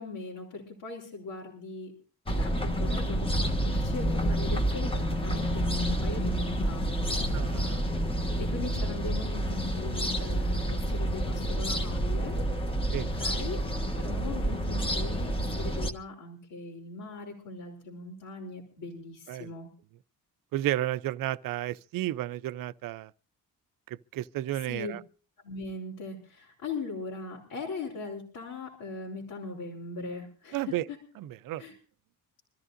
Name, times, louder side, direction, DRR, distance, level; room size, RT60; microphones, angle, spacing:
voice 1, 0.0-1.9 2.3-7.3 8.4-12.4 12.9-13.6 14.0-19.7 24.7-25.0 25.4-31.0 31.6-31.7, left 3 dB, 85° left, 3.9 m, -40 dB
sound 1, 2.3-15.9, right 1 dB, 15° left, 1.4 m, -29 dB
voice 2, 7.3-7.9 12.9-13.1 19.3-19.5 20.5-23.1 23.9-25.0 30.5-30.8 31.2-31.6, right 14 dB, 70° right, 0.6 m, -32 dB
25.5 x 14.0 x 2.6 m
cardioid pair, 160°, 34 cm